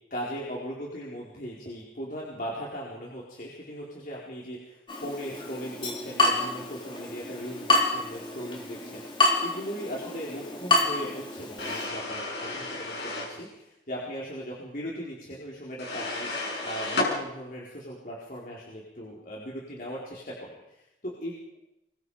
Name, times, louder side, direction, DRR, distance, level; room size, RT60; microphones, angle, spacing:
voice 1, 0.1-16.3 16.6-21.6, equal, 50° left, -4 dB, 4.7 m, -38 dB
Water tap faucet / Drip, 4.9-11.9, left 2 dB, 30° left, 3.5 m, -28 dB
sound 1, 11.6-13.4 15.8-17.1, left 2 dB, 80° left, 7.2 m, -32 dB
27.5 x 23.5 x 5.1 m, 0.87 s
head